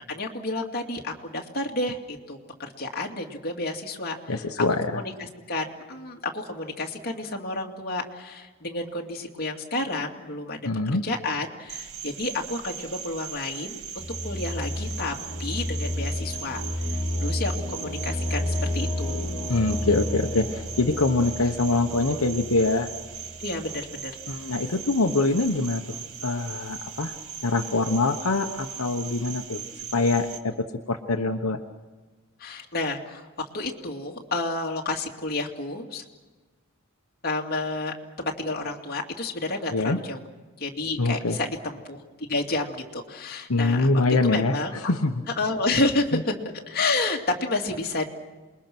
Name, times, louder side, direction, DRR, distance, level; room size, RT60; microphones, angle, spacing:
voice 1, 0.1-4.4 4.9-5.1 5.5-10.7 11.0-15.1 15.4-16.6 17.2-19.3 23.4-24.1 32.4-33.3 33.5-36.0 37.2-40.2 40.6-43.9 44.2-44.9 45.4-46.3 46.7-48.1, left 2 dB, 45° left, 0 dB, 2.4 m, -30 dB
voice 2, 4.3-5.0 10.6-11.0 19.5-22.9 24.3-26.0 26.2-27.2 27.4-29.6 29.9-30.5 30.9-31.6 39.7-40.0 41.0-41.4 43.5-45.2 46.1-46.2, left 3 dB, 80° left, 4 dB, 1.1 m, -24 dB
Cricket, 11.7-30.4, right 8 dB, 80° right, 1.5 m, -39 dB
sound 1, 14.0-23.8, left 1 dB, 25° left, 2.5 m, -31 dB
28.0 x 21.5 x 6.1 m, 1.3 s
head